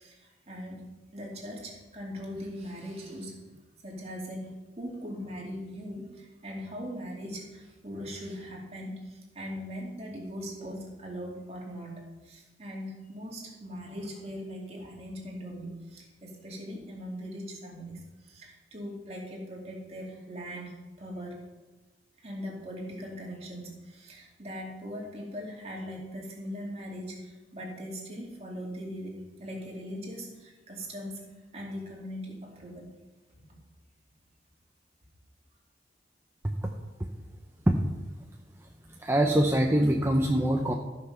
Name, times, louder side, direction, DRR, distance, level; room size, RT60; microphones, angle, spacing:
voice 1, 0.0-3.6 3.8-21.4 22.2-31.2 31.5-32.9, equal, 35° right, -2 dB, 2.4 m, -40 dB
voice 2, 38.9-40.7, right 1 dB, 15° right, 1 dB, 0.6 m, -24 dB
13.5 x 6.0 x 5.7 m, 1.1 s
head